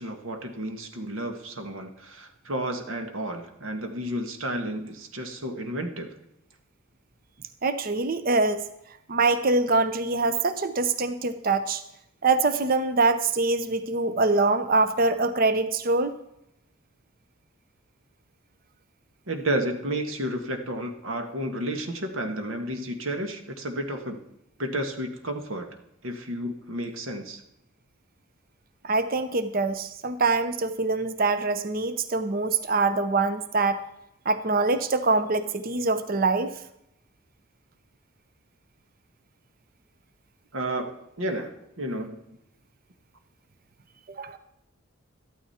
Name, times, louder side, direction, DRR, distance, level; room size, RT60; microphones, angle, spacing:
voice 1, 0.0-6.1 19.3-24.2 24.6-25.7 26.0-27.4 40.5-42.2, right 1 dB, 80° right, 5 dB, 1.6 m, -32 dB
voice 2, 7.6-8.6 9.1-11.8 12.2-16.1 28.8-33.8 34.3-36.5 44.1-44.4, right 3 dB, 45° right, 11 dB, 0.6 m, -24 dB
13.0 x 12.5 x 4.3 m, 0.81 s
head